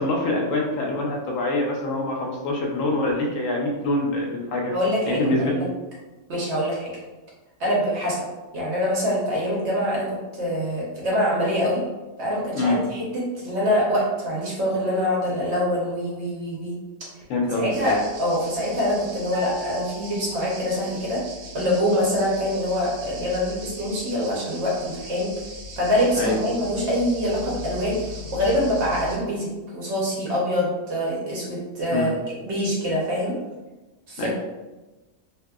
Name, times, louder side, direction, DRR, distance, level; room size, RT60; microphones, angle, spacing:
voice 1, 0.0-4.7 5.1-5.6 12.5-12.8 17.3-18.0 26.2-26.3 31.9-32.1 34.2-34.3, left 2 dB, 70° left, -1 dB, 0.9 m, -25 dB
voice 2, 4.7-5.6 6.3-6.9 7.6-8.2 8.5-11.8 12.2-16.8 17.6-21.2 21.5-25.3 25.8-32.1 32.4-33.4 34.1-34.3, equal, 55° right, -4 dB, 0.9 m, -25 dB
sound 1, 17.7-29.2, left 1 dB, 85° right, 1.2 m, -40 dB
sound 2, 19.3-20.8, left 2 dB, 35° left, 0.9 m, -40 dB
2.8 x 2.6 x 2.3 m, 1.1 s
omnidirectional pair, 1.5 m